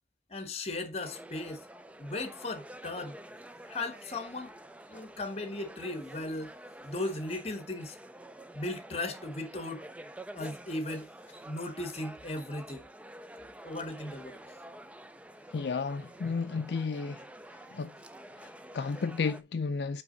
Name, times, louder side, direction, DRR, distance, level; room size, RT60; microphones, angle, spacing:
voice 1, 0.3-1.6 2.0-3.2 3.7-4.5 4.9-6.5 6.8-8.0 8.5-9.8 10.3-11.1 11.4-12.9 13.6-14.4, left 2 dB, 35° left, 1.2 m, -37 dB
sound 1, 1.0-19.4, right 1 dB, 10° right, 0.4 m, -49 dB
voice 2, 15.5-17.3 17.7-17.9 18.4-20.0, left 4 dB, 70° left, 0.4 m, -33 dB
6.0 x 5.2 x 3.9 m
head